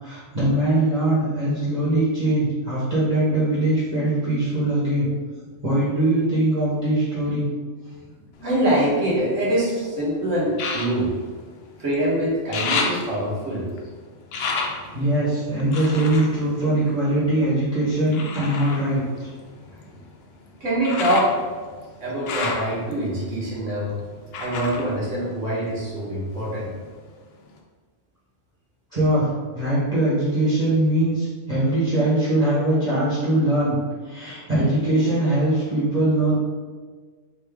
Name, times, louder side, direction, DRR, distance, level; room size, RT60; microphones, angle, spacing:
voice 1, 0.0-5.1 5.6-7.4 14.9-19.3 28.9-33.8 34.0-36.4, right 1 dB, 30° right, -10 dB, 1.2 m, -21 dB
sound 1, 8.3-9.7 10.5-12.0 12.3-17.5 18.1-25.9 26.3-27.1 27.6-27.7, left 4 dB, 65° left, 0.7 m, -32 dB
voice 2, 8.4-11.1 11.8-13.6 20.6-21.3 22.0-23.9 24.4-26.7, right 1 dB, 65° right, -7 dB, 1.6 m, -24 dB
3.7 x 2.7 x 3.4 m, 1.5 s
omnidirectional pair, 1.4 m